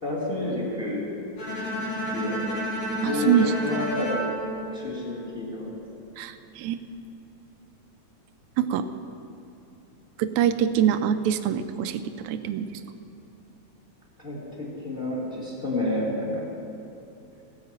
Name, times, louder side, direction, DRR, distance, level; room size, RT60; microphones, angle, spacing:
voice 1, 0.0-1.1 2.1-2.4 3.0-4.2 4.7-5.8 14.2-16.4, left 2 dB, 20° left, -5 dB, 2.2 m, -30 dB
Bowed string instrument, 1.4-5.5, equal, 70° left, 3.2 m, -31 dB
voice 2, 3.0-3.5 6.2-6.8 8.6-8.9 10.2-12.7, right 9 dB, 80° right, 10 dB, 1.9 m, -24 dB
17.0 x 5.7 x 8.7 m, 2.8 s
omnidirectional pair, 3.4 m